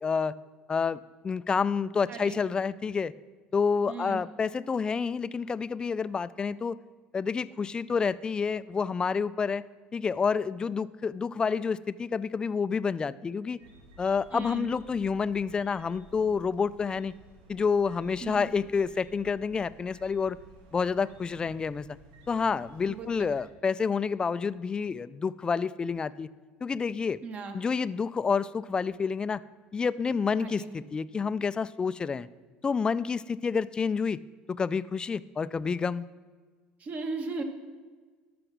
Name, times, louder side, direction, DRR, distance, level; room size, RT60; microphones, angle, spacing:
voice 1, 0.0-0.4 0.7-3.1 3.5-6.8 7.1-9.6 9.9-13.6 14.0-17.1 17.5-20.4 20.7-21.8 22.3-26.3 26.6-27.2 27.5-29.4 29.7-32.3 32.6-34.2 34.5-36.1, left 5 dB, 25° left, 16 dB, 0.4 m, -29 dB
voice 2, 2.1-2.4 3.9-4.2 14.3-14.7 18.2-18.5 22.9-23.3 27.2-27.6 30.4-30.7 36.8-37.4, right 4 dB, 45° right, 5 dB, 1.6 m, -37 dB
sound 1, 13.6-23.5, equal, 90° right, 1.7 m, -55 dB
13.0 x 6.1 x 6.1 m, 1.5 s
supercardioid pair, 110°, 4 cm